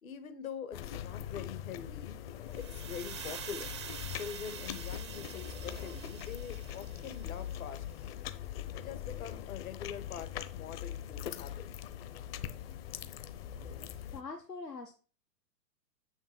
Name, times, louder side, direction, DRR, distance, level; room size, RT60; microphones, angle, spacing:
voice 1, 0.0-2.2 2.6-3.8 4.1-8.2 8.8-11.8, left 7 dB, 60° left, 9 dB, 1.8 m, -44 dB
sound 1, 0.7-14.2, left 10 dB, 40° left, 1.0 m, -42 dB
sound 2, 2.5-7.5, right 8 dB, 20° right, 0.3 m, -46 dB
voice 2, 14.0-14.9, left 4 dB, 85° left, 5 dB, 1.3 m, -43 dB
7.1 x 6.4 x 6.4 m, 0.38 s
figure-of-eight pair, 110°, 48 cm